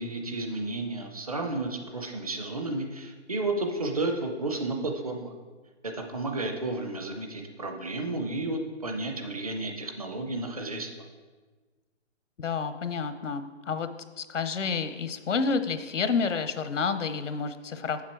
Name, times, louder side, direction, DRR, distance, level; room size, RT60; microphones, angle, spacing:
voice 1, 0.0-5.3 5.8-10.9, right 2 dB, 30° right, 4 dB, 0.6 m, -32 dB
voice 2, 12.4-13.9 14.2-18.0, left 5 dB, 80° left, 10 dB, 0.8 m, -29 dB
7.3 x 7.1 x 4.5 m, 1.3 s
hypercardioid pair, 170°, 36 cm